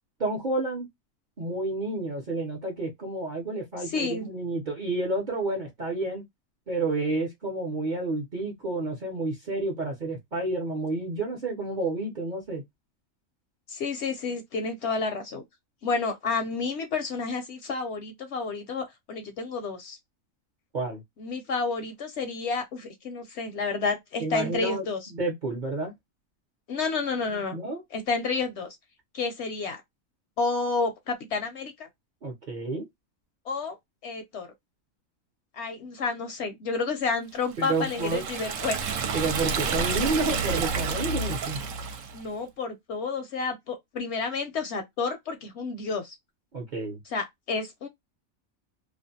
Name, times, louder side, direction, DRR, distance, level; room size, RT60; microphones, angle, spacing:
voice 1, 0.2-0.9 1.4-6.2 6.7-12.6 20.7-21.0 24.2-25.9 27.3-27.8 32.2-32.9 37.6-38.2 39.1-41.6 46.5-47.0, right 2 dB, 45° right, 0.6 m, -30 dB
voice 2, 3.8-4.3 13.7-15.4 15.8-20.0 21.2-25.1 26.7-27.6 27.9-28.8 29.1-29.8 30.4-31.9 33.5-33.8 34.0-34.5 35.5-38.8 42.1-46.1 47.1-47.9, left 4 dB, 65° left, 0.7 m, -30 dB
Liquid, 37.6-42.2, right 5 dB, 70° right, 0.9 m, -30 dB
2.4 x 2.1 x 2.6 m
omnidirectional pair, 1.5 m